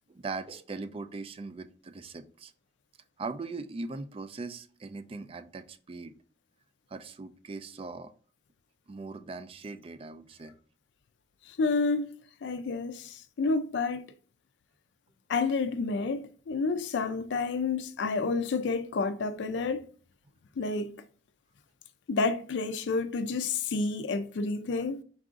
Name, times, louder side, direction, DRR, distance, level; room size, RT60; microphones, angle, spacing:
voice 1, 0.1-2.5 3.2-6.1 6.9-8.1 8.9-10.6, right 3 dB, 30° right, 0.3 m, -40 dB
voice 2, 11.6-12.1 12.4-14.1 15.3-19.8 20.6-21.0 22.1-25.0, left 4 dB, 70° left, 0.4 m, -29 dB
4.7 x 2.5 x 3.6 m
head